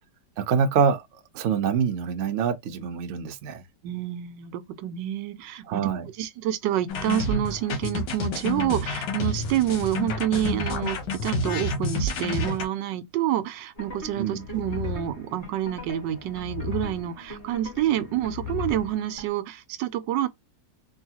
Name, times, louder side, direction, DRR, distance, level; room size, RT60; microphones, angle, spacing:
voice 1, 0.4-1.0 1.3-3.6 5.7-6.1 14.2-14.5, right 6 dB, 65° right, 0.7 m, -25 dB
voice 2, 3.8-5.9 6.2-20.3, right 12 dB, 90° right, 1.3 m, -28 dB
sound 1, 6.9-12.6, left 2 dB, 80° left, 1.6 m, -29 dB
sound 2, 13.7-19.3, left 5 dB, 35° left, 2.0 m, -37 dB
3.8 x 2.4 x 2.8 m
omnidirectional pair, 1.9 m